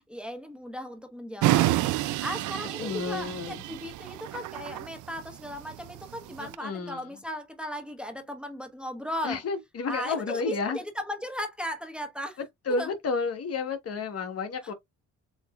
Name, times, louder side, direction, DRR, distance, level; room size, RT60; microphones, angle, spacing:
voice 1, 0.0-1.7 2.2-9.4 9.9-12.4 12.7-12.9, equal, 5° right, 1.1 m, -36 dB
sound 1, 1.4-6.6, right 16 dB, 75° right, 0.4 m, -29 dB
voice 2, 2.8-3.6 6.4-7.1 9.2-10.8 12.7-14.7, left 4 dB, 50° left, 1.2 m, -31 dB
6.9 x 3.0 x 2.3 m
cardioid pair, 90°, 30 cm